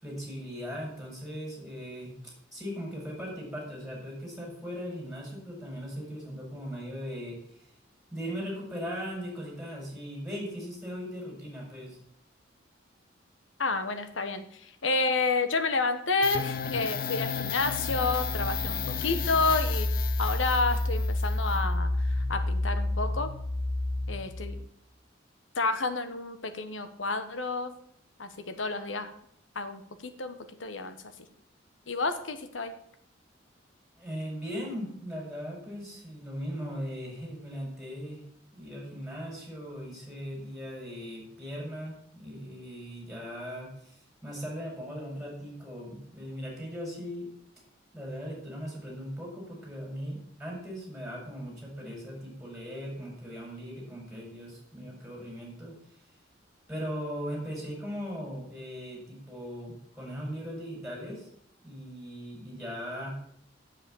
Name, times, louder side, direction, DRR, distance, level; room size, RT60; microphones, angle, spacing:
voice 1, 0.0-7.6 8.1-12.0 34.0-38.2 38.5-47.3 47.9-55.8 56.7-61.3 61.6-63.2, equal, ahead, -2 dB, 4.9 m, -39 dB
voice 2, 13.6-19.9 20.2-23.3 24.1-24.6 25.5-27.7 28.2-29.1 29.5-31.0 31.9-32.7, left 3 dB, 80° left, 9 dB, 1.3 m, -30 dB
sound 1, 16.2-24.7, left 3 dB, 50° left, 0.8 m, -30 dB
7.9 x 7.5 x 8.6 m, 0.70 s
head